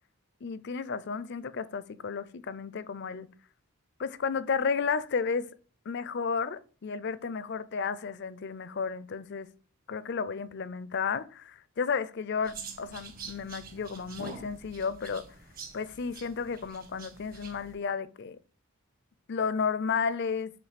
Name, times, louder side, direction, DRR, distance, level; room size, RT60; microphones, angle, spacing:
voice 1, 0.4-3.3 4.0-5.5 5.9-9.5 9.9-15.2 15.7-18.4 19.3-20.5, left 5 dB, 50° left, 0.4 m, -32 dB
sound 1, 12.4-17.7, right 4 dB, 40° right, 1.2 m, -46 dB
7.2 x 3.1 x 5.0 m
head